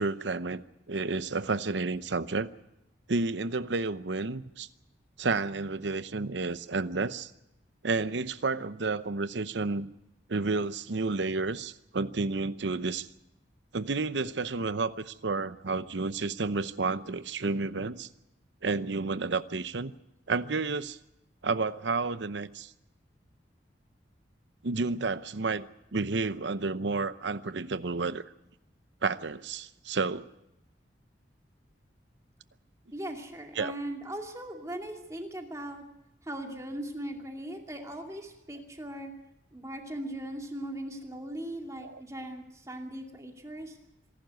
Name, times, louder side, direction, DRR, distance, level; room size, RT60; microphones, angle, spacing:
voice 1, 0.0-2.5 3.1-4.7 5.2-7.3 7.8-9.9 10.3-13.1 13.7-18.1 18.6-19.9 20.3-21.0 21.4-22.7 24.6-25.7 25.9-28.2 29.0-30.3 33.6-33.7 41.8-42.0, right 3 dB, 75° right, 0.8 m, -31 dB
voice 2, 32.9-35.8 36.2-39.1 39.5-43.8, right 1 dB, 15° right, 2.5 m, -39 dB
25.5 x 12.0 x 9.3 m
head